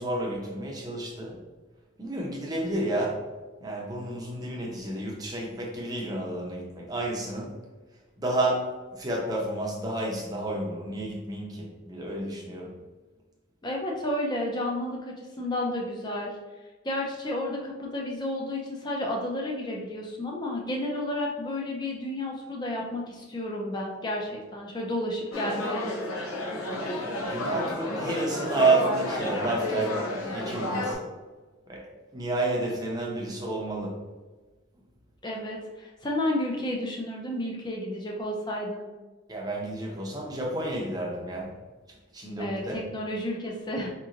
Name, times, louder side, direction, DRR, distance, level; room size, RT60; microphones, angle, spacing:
voice 1, 0.0-1.3 2.0-3.2 3.6-7.5 8.2-8.6 9.0-12.7 27.3-29.9 30.2-31.0 31.7-31.8 32.1-34.0 39.3-41.5 42.1-42.8, right 2 dB, 20° right, -2 dB, 0.7 m, -30 dB
voice 2, 13.6-16.4 16.8-25.8 35.2-38.9 42.4-43.9, left 1 dB, 20° left, -1 dB, 0.6 m, -31 dB
sound 1, 25.3-30.9, left 1 dB, 90° left, 0.7 m, -30 dB
4.7 x 3.0 x 2.5 m, 1.3 s
head